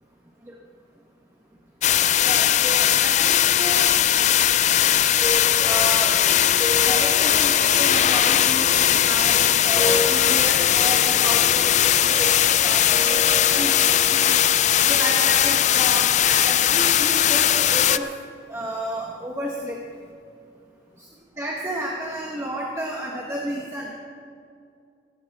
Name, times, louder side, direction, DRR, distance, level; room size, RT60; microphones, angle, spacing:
sound 1, 1.8-18.0, left 11 dB, 40° left, 0.3 m, -19 dB
voice 1, 2.2-3.9 5.6-6.1 6.8-13.2 13.5-14.4 14.9-18.1 18.5-19.8 21.4-23.9, right 1 dB, 15° right, -2 dB, 1.2 m, -31 dB
Harp, 5.2-17.3, left 2 dB, 15° left, 2.8 m, -33 dB
17.0 x 17.0 x 3.6 m, 2.3 s
head